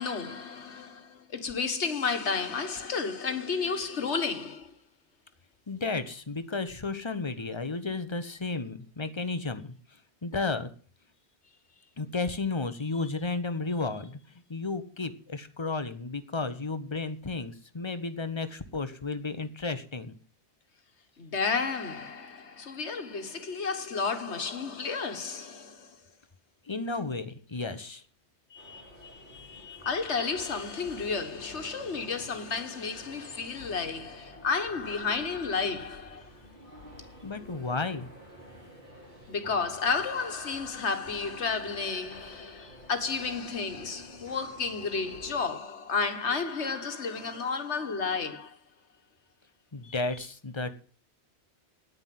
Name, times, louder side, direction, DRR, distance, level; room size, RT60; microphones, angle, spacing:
voice 1, 0.0-4.7 21.2-26.0 28.5-36.3 39.3-48.6 49.8-49.9, left 5 dB, 85° left, 1.8 m, -32 dB
voice 2, 5.7-9.7 10.2-10.7 12.0-14.2 14.5-20.1 26.7-28.0 37.2-38.1 49.7-50.7, left 3 dB, 25° left, 1.1 m, -33 dB
sound 1, 28.5-45.5, equal, 50° right, 6.1 m, -50 dB
9.7 x 9.6 x 7.7 m
omnidirectional pair, 1.1 m